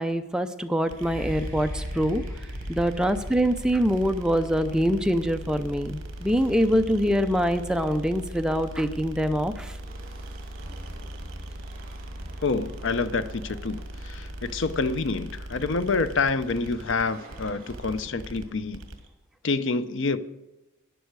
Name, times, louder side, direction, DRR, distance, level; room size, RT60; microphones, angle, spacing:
voice 1, 0.0-2.2 2.7-9.8, equal, 5° right, 0.5 m, -24 dB
sound 1, 0.8-19.1, right 1 dB, 60° right, 2.0 m, -39 dB
sound 2, 0.9-8.6 9.3-9.4, equal, 15° left, 4.4 m, -40 dB
Chatter / Hiss / Rattle, 1.6-18.3, right 1 dB, 40° right, 5.4 m, -52 dB
voice 2, 12.4-18.8 19.4-20.2, left 4 dB, 55° left, 0.5 m, -27 dB
13.0 x 10.5 x 4.7 m
head